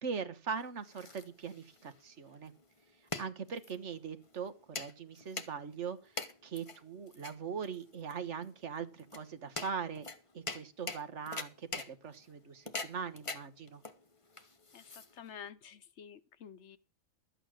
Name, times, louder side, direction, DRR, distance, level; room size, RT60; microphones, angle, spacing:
voice 1, 0.0-2.5 3.2-6.1 6.4-10.1 10.3-13.8, right 6 dB, 65° right, 1.5 m, -41 dB
sound 1, 0.6-15.5, left 3 dB, 25° left, 1.1 m, -45 dB
voice 2, 14.7-16.8, left 7 dB, 65° left, 1.1 m, -50 dB
12.5 x 8.7 x 6.3 m
omnidirectional pair, 1.3 m